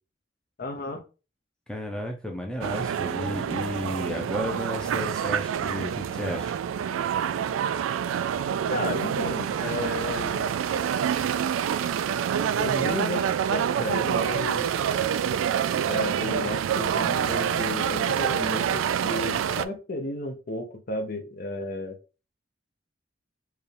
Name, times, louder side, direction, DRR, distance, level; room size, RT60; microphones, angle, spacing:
voice 1, 0.6-1.0 8.7-10.5 12.6-14.8 15.9-22.0, left 2 dB, 50° left, 6 dB, 0.6 m, -33 dB
voice 2, 1.7-6.6, left 1 dB, 5° left, 2 dB, 0.5 m, -33 dB
sound 1, 2.6-19.6, right 8 dB, 90° right, 0.3 m, -27 dB
4.6 x 2.4 x 3.3 m, 0.33 s
head